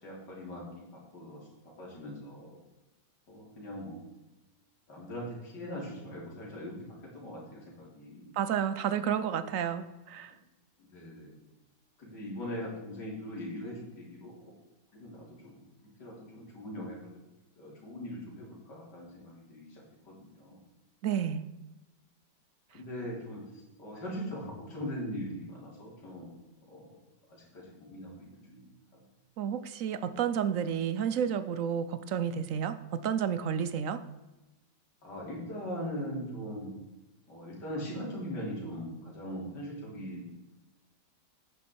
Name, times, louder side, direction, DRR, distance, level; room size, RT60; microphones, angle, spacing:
voice 1, 0.0-1.4 1.8-2.6 3.3-4.0 4.9-6.7 7.1-8.3 10.3-10.4 10.8-11.4 12.0-14.5 14.9-15.6 16.0-17.2 17.6-20.6 22.7-26.4 26.7-27.0 27.3-28.6 28.9-29.0 35.0-36.7 37.3-40.3, equal, 70° left, -3 dB, 4.3 m, -41 dB
voice 2, 8.3-10.3 21.0-21.4 29.4-34.0, right 8 dB, 65° right, 13 dB, 0.8 m, -31 dB
10.0 x 9.6 x 4.6 m, 1.1 s
omnidirectional pair, 1.9 m